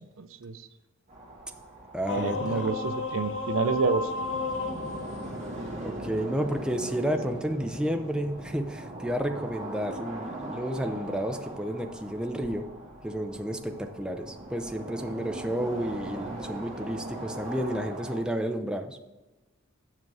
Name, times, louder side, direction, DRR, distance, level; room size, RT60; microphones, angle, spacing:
voice 1, 0.2-0.6 2.2-4.1, right 4 dB, 70° right, 12 dB, 0.5 m, -28 dB
sound 1, 1.1-18.2, right 1 dB, 35° right, 2.0 m, -40 dB
voice 2, 1.9-2.6 5.8-12.7 13.0-19.0, equal, 5° right, 5 dB, 0.4 m, -31 dB
sound 2, 2.1-6.3, left 3 dB, 60° left, 1.0 m, -33 dB
7.6 x 6.0 x 4.7 m, 1.1 s
head